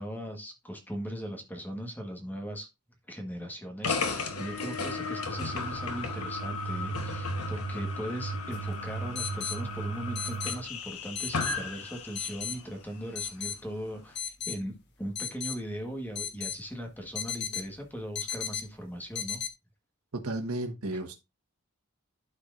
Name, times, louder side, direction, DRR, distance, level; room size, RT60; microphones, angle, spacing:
voice 1, 0.0-2.7 3.1-19.4 20.9-21.0, equal, 10° left, 1.4 m, -39 dB
sound 1, 3.8-12.6, left 2 dB, 85° left, 1.2 m, -34 dB
sound 2, 8.5-8.6 9.2-9.6 10.2-10.6 11.2-11.6 12.2-12.6 13.2-13.6 14.2-14.6 15.2-15.6 16.2-16.6 17.2-17.7 18.2-18.6 19.2-19.5, left 8 dB, 50° left, 1.3 m, -34 dB
voice 2, 20.1-21.1, right 2 dB, 80° right, 1.4 m, -33 dB
12.0 x 4.6 x 2.5 m
head